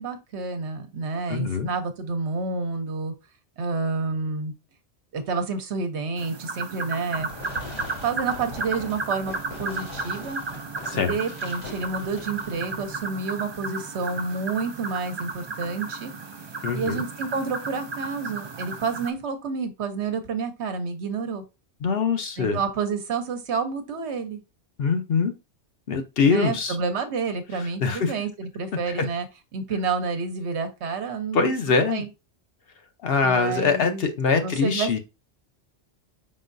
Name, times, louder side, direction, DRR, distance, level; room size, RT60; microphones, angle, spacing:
voice 1, 0.0-3.1 3.6-4.5 5.1-7.3 8.0-9.3 9.6-10.4 10.9-16.1 16.7-21.4 22.4-24.4 26.3-29.3 29.5-32.1 33.2-34.1 34.4-35.0, right 4 dB, 70° right, 8 dB, 1.1 m, -29 dB
voice 2, 1.3-1.7 10.9-11.2 16.6-17.0 21.8-22.6 24.8-25.3 25.9-26.8 27.8-28.1 28.9-29.1 31.3-32.0 33.0-35.0, left 5 dB, 60° left, 7 dB, 0.9 m, -23 dB
sound 1, 6.2-19.1, right 4 dB, 45° right, 0.3 m, -34 dB
Fireworks, 7.1-13.1, left 4 dB, 80° left, 2.1 m, -42 dB
5.4 x 3.8 x 2.5 m, 0.26 s
omnidirectional pair, 1.2 m